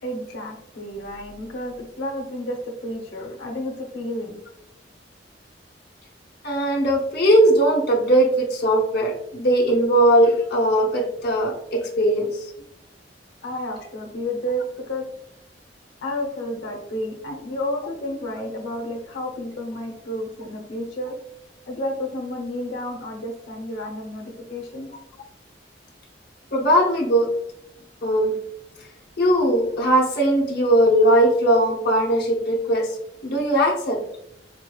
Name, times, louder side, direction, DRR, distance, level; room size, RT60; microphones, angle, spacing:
voice 1, 0.0-4.4 13.4-15.1 16.0-21.2 21.7-24.9, left 1 dB, 90° left, 1 dB, 0.8 m, -31 dB
voice 2, 6.4-12.5 26.5-27.3 28.0-28.4 29.2-33.0 33.2-34.0, right 1 dB, 60° left, -1 dB, 0.8 m, -19 dB
4.0 x 3.1 x 2.3 m, 0.75 s
head